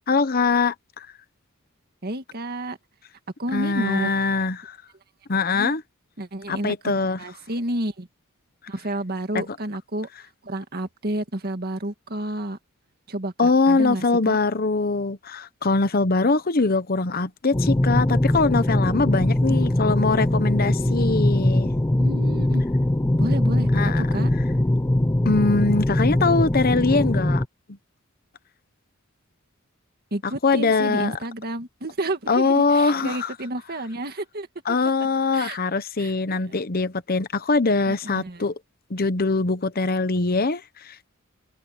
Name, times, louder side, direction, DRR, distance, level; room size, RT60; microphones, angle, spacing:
voice 1, 0.1-1.1 3.5-4.8 5.3-5.8 6.5-7.2 9.3-9.4 13.4-21.7 23.7-24.1 25.2-27.4 30.4-31.1 32.3-33.3 34.7-38.6 38.9-41.1, left 3 dB, 45° left, 0.9 m, -22 dB
voice 2, 2.0-2.8 3.4-4.1 5.5-5.7 6.2-8.1 8.7-10.1 10.4-12.6 13.1-14.4 19.4-19.7 22.0-22.6 23.2-23.7 24.0-24.3 30.1-34.8 35.3-35.6 36.0-36.6 37.9-38.5, right 1 dB, 45° right, 2.0 m, -31 dB
sound 1, 17.5-27.5, left 1 dB, 15° left, 0.5 m, -21 dB
open air
head